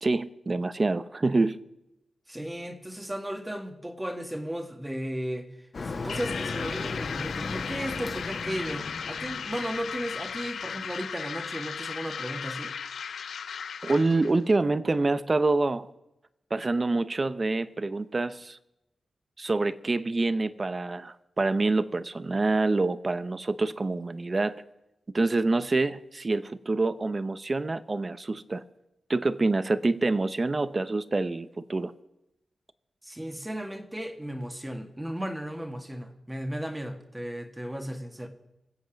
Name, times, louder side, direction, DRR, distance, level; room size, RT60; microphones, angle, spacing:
voice 1, 0.0-1.6 13.8-15.9 16.5-18.6 19.4-24.6 25.1-28.6 29.1-31.9, right 3 dB, 30° right, 15 dB, 0.7 m, -26 dB
voice 2, 2.3-5.5 6.0-12.7 33.0-38.3, equal, 10° right, 6 dB, 1.7 m, -35 dB
Motor vehicle (road), 5.7-10.7, left 3 dB, 50° left, 1.9 m, -37 dB
sound 1, 6.1-14.4, left 6 dB, 85° left, 0.5 m, -36 dB
24.0 x 8.1 x 5.1 m, 0.91 s
wide cardioid pair, 100°, 0 cm